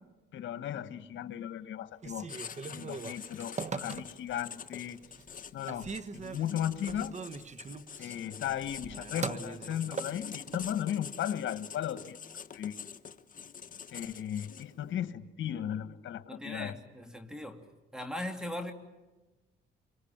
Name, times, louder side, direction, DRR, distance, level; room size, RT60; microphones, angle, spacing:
voice 1, 0.3-5.0 5.5-5.9 6.1-7.2 8.0-12.2 12.5-12.8 13.9-16.8, left 10 dB, 70° left, 12 dB, 1.6 m, -36 dB
Telephone, 1.9-4.4 4.9-5.4 5.7-10.7, right 5 dB, 35° right, 1.3 m, -41 dB
Writing, 2.3-14.9, left 7 dB, 45° left, 1.3 m, -46 dB
voice 2, 16.3-17.6 17.9-18.7, left 1 dB, 5° right, 6 dB, 2.6 m, -39 dB
26.5 x 24.5 x 9.0 m, 1.1 s
cardioid pair, 90°, 20 cm